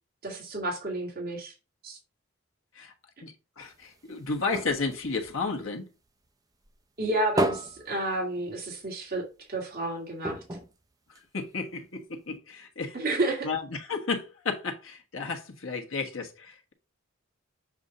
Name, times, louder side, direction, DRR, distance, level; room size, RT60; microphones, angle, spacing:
voice 1, 0.2-1.5 1.8-2.0 7.0-10.4 12.9-13.5, right 2 dB, 45° right, 2.2 m, -31 dB
voice 2, 3.2-5.8 11.3-13.0 13.4-16.7, left 4 dB, 75° left, 1.4 m, -33 dB
sound 1, 3.6-6.3 6.6-8.9 9.2-9.3 9.6-9.8 10.2-11.7 12.4-12.5, right 1 dB, 15° right, 0.6 m, -34 dB
7.2 x 2.6 x 5.2 m
head